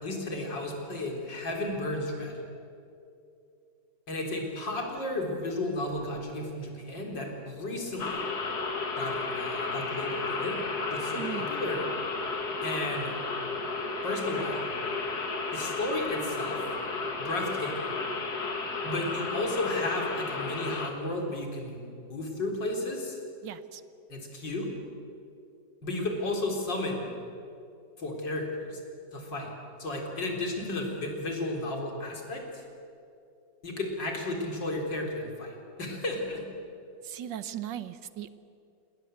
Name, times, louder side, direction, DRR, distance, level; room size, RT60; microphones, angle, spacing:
voice 1, 0.0-2.3 4.1-8.2 9.0-10.6 10.9-11.8 12.6-13.2 14.0-14.7 15.5-16.6 17.2-18.0 18.8-23.2 24.1-24.7 25.8-27.1 28.0-28.8 29.1-29.5 29.8-32.6 33.6-36.4, left 2 dB, 85° left, 1 dB, 4.5 m, -33 dB
sound 1, 8.0-20.9, left 3 dB, 60° left, 2.6 m, -33 dB
voice 2, 11.1-11.5 23.4-23.8 37.0-38.3, right 11 dB, 85° right, 13 dB, 1.7 m, -38 dB
29.0 x 20.0 x 8.0 m, 2.6 s
omnidirectional pair, 1.9 m